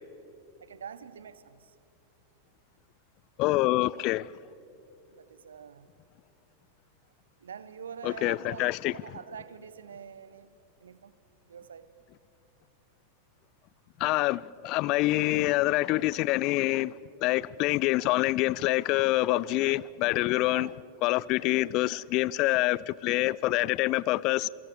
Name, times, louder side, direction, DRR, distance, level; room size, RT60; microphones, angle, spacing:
voice 1, 0.6-1.7 5.1-5.9 7.4-10.5 10.8-11.1 11.5-11.9 20.4-20.8, right 7 dB, 65° right, 1.0 m, -45 dB
voice 2, 3.4-4.3 8.0-8.9 14.0-16.9 17.2-20.7 21.0-24.5, left 18 dB, 40° left, 0.5 m, -26 dB
28.0 x 23.5 x 6.5 m
figure-of-eight pair, 90°, 0 cm